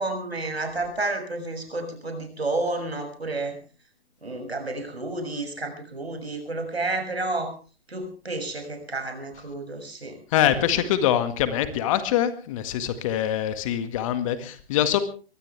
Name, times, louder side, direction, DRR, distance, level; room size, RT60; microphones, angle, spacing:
voice 1, 0.0-3.6 4.2-7.5 7.9-10.2 10.5-10.8, right 2 dB, 85° right, 6 dB, 6.7 m, -31 dB
voice 2, 10.3-15.0, left 11 dB, 35° left, 10 dB, 1.9 m, -24 dB
22.5 x 17.5 x 3.4 m, 0.36 s
figure-of-eight pair, 135°, 30 cm